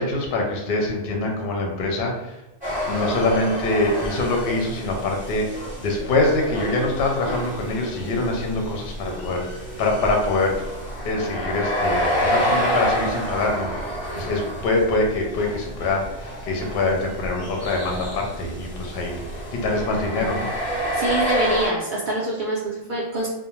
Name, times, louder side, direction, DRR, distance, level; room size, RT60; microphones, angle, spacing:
voice 1, 0.0-2.4 2.8-9.5 9.8-10.7 11.0-20.5, left 2 dB, 60° left, 0 dB, 0.7 m, -24 dB
sound 1, 2.6-21.7, equal, 10° right, 0.7 m, -29 dB
voice 2, 20.7-23.3, right 2 dB, 85° right, -4 dB, 0.4 m, -25 dB
2.5 x 2.0 x 3.0 m, 0.98 s
omnidirectional pair, 1.4 m